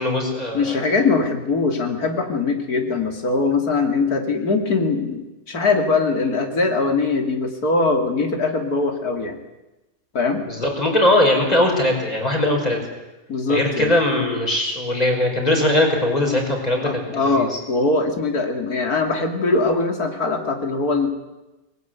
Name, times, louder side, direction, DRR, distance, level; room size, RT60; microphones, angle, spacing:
voice 1, 0.0-0.8 10.5-12.8 13.5-17.5, left 1 dB, 25° left, 1 dB, 5.8 m, -20 dB
voice 2, 0.5-9.4 10.1-10.4 13.3-13.9 16.8-21.1, left 3 dB, 80° left, 5 dB, 3.1 m, -21 dB
22.5 x 20.5 x 9.5 m, 1.0 s
omnidirectional pair, 1.6 m